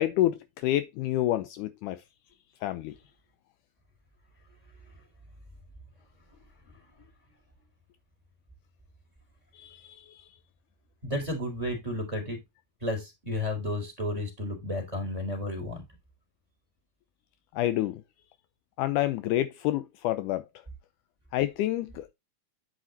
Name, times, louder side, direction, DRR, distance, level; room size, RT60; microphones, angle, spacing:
voice 1, 0.0-2.0 2.6-2.9 9.5-10.2 17.5-18.0 18.8-20.4 21.3-22.1, left 14 dB, 80° left, 1.8 m, -28 dB
voice 2, 11.0-12.4 12.8-15.8, left 1 dB, 10° right, 3.8 m, -32 dB
9.9 x 5.2 x 4.0 m
omnidirectional pair, 4.2 m